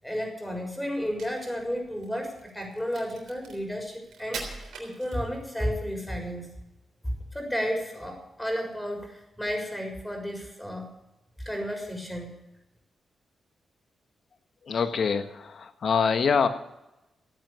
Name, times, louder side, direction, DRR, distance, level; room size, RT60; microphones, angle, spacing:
voice 1, 0.0-4.5 4.8-6.5 7.0-10.9 11.4-12.3, equal, 10° left, 3 dB, 6.5 m, -32 dB
Crack, 1.0-5.6, right 5 dB, 80° right, 3.5 m, -43 dB
voice 2, 14.6-16.5, left 6 dB, 65° left, 9 dB, 1.4 m, -25 dB
16.0 x 9.3 x 6.9 m, 0.93 s
supercardioid pair, 50°, 0 cm